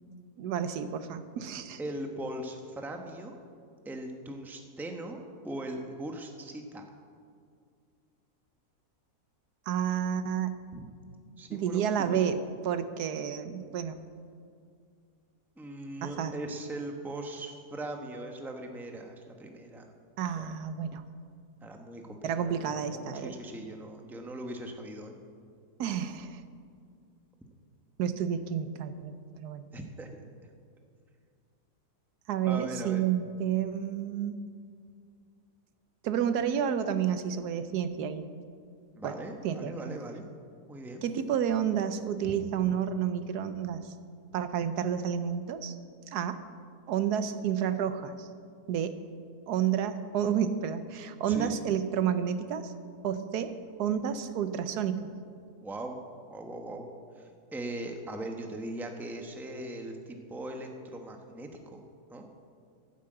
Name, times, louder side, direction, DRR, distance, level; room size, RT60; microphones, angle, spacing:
voice 1, 0.4-1.8 9.7-10.6 11.5-12.4 12.6-14.0 16.0-16.3 20.2-21.0 22.2-23.3 25.8-26.4 28.0-29.6 32.3-34.4 36.0-38.2 39.0-39.1 39.4-39.9 41.0-43.9 44.3-45.7 46.1-46.4 46.9-48.3 48.7-49.0 49.5-52.7 53.0-53.5 53.8-55.1, right 8 dB, 80° right, 11 dB, 1.3 m, -30 dB
voice 2, 1.8-3.4 3.8-6.8 10.7-10.9 11.4-12.3 15.6-19.9 20.4-20.5 21.6-25.1 29.7-30.1 32.4-33.0 38.9-40.2 40.7-41.0 42.2-42.3 51.3-51.6 55.6-56.0 56.3-56.9 57.2-61.8 62.1-62.3, right 1 dB, ahead, 3 dB, 0.8 m, -40 dB
11.5 x 9.6 x 7.7 m, 2.3 s
omnidirectional pair, 1.7 m